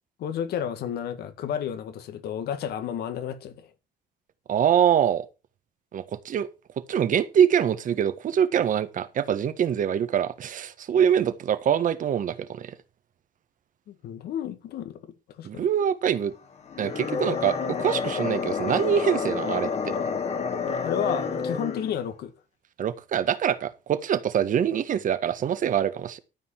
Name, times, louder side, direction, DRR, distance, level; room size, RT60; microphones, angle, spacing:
voice 1, 0.2-3.7 13.9-15.7 20.8-22.3, left 9 dB, 70° left, 2.0 m, -32 dB
voice 2, 4.5-5.3 5.9-6.5 6.9-12.7 15.4-16.3 16.8-19.9 22.8-26.2, right 9 dB, 50° right, 1.5 m, -24 dB
sound 1, 16.7-22.0, left 5 dB, 40° left, 2.1 m, -29 dB
13.0 x 5.4 x 7.4 m
cardioid pair, 110°, 17 cm